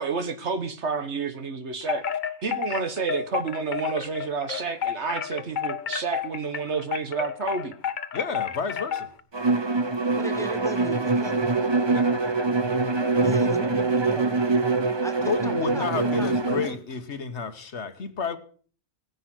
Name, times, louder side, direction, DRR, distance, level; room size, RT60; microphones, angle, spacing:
voice 1, 0.0-2.0 2.4-7.7, right 4 dB, 65° right, 1.6 m, -29 dB
Wind chime, 1.8-9.2, left 8 dB, 45° left, 0.8 m, -31 dB
voice 2, 8.1-9.1 11.9-12.3 13.7-13.9 15.2-18.4, left 5 dB, 65° left, 1.4 m, -31 dB
Bowed string instrument, 9.3-16.8, right 3 dB, 25° right, 0.7 m, -24 dB
voice 3, 10.1-11.4 13.2-14.3 15.0-16.8, left 1 dB, ahead, 1.6 m, -37 dB
17.0 x 10.0 x 6.1 m
omnidirectional pair, 1.3 m